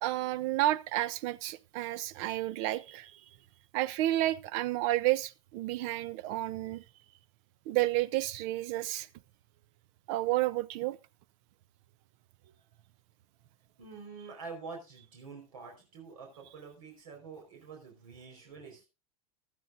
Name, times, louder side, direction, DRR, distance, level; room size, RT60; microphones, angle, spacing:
voice 1, 0.0-3.2 3.7-6.8 7.7-9.1 10.1-11.0, right 16 dB, 60° right, 0.8 m, -31 dB
voice 2, 13.8-18.9, right 4 dB, 75° right, 4.7 m, -47 dB
15.5 x 12.5 x 2.6 m
hypercardioid pair, 110°, 18 cm